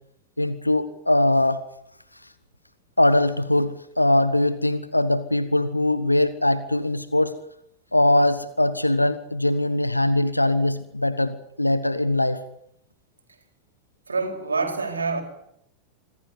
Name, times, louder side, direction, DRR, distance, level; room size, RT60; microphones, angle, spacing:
voice 1, 0.4-1.6 3.0-7.4 7.9-12.4, left 1 dB, 85° left, 13 dB, 1.2 m, -21 dB
voice 2, 14.1-15.2, right 4 dB, 75° right, 6 dB, 4.4 m, -26 dB
25.5 x 15.5 x 9.8 m, 0.77 s
figure-of-eight pair, 90°, 0 cm